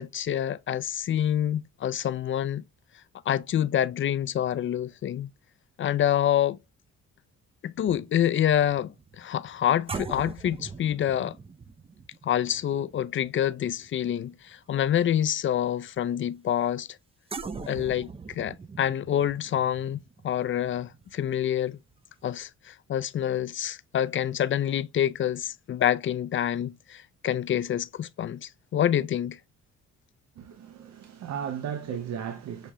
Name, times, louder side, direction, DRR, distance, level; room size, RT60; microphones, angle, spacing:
voice 1, 0.0-2.6 3.3-5.3 5.8-6.6 7.6-11.3 12.2-16.9 17.7-20.0 20.2-21.8 22.2-29.4, left 10 dB, 40° left, 0.4 m, -27 dB
Yoyogi drum, 7.8-14.4 14.7-15.0 17.3-21.9 22.2-22.4, right 5 dB, 20° right, 0.5 m, -42 dB
voice 2, 30.4-32.7, right 8 dB, 65° right, 0.8 m, -35 dB
6.7 x 2.4 x 2.9 m
cardioid pair, 90°, 30 cm